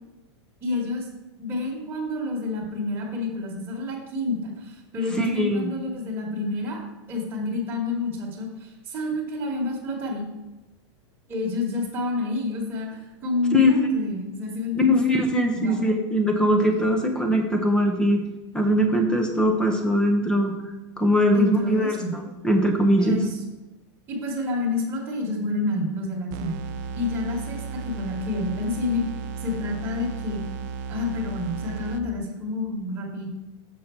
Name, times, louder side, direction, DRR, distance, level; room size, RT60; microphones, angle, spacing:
voice 1, 0.6-1.1 1.4-6.8 7.1-10.3 11.3-14.9 15.5-15.8 16.7-16.9 21.3-22.1 23.0-23.3 24.1-26.5 26.9-29.0 29.4-30.4 30.9-33.4, left 3 dB, 15° right, -6 dB, 1.6 m, -29 dB
voice 2, 5.1-5.7 13.5-13.7 14.7-18.2 18.5-20.5 21.0-22.0 22.4-23.2, equal, 5° left, 4 dB, 0.7 m, -21 dB
sound 1, 26.3-32.4, right 6 dB, 40° right, 0.4 m, -34 dB
6.7 x 5.6 x 4.4 m, 1.1 s
supercardioid pair, 160°, 16 cm